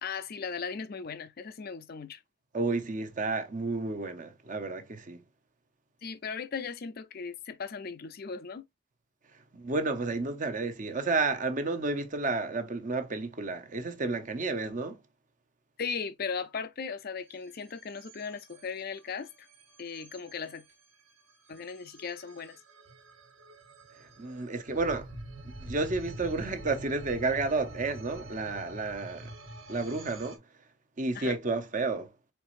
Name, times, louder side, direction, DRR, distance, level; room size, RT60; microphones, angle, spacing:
voice 1, 0.0-2.2 6.0-8.6 15.8-19.5 19.8-20.6 21.5-22.6 31.1-31.4, left 5 dB, 50° left, 0.5 m, -37 dB
voice 2, 2.5-5.2 9.5-15.0 24.2-25.1 25.6-29.3 29.7-30.4 31.0-32.1, right 3 dB, 40° right, 0.7 m, -31 dB
sound 1, 17.3-30.4, right 1 dB, 75° right, 1.4 m, -46 dB
4.5 x 4.0 x 2.5 m
head